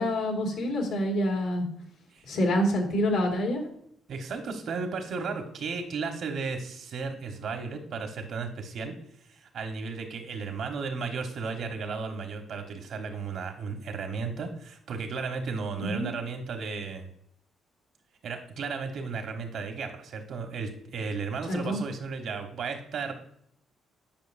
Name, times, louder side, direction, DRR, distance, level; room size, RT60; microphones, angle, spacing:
voice 1, 0.0-1.7 2.3-3.6 15.8-16.1 21.5-21.8, equal, 90° left, 0 dB, 2.0 m, -27 dB
voice 2, 4.1-9.0 9.3-17.1 18.2-23.1, right 4 dB, 65° right, 5 dB, 1.1 m, -34 dB
9.0 x 5.1 x 2.6 m, 0.69 s
cardioid pair, 90°, 0 cm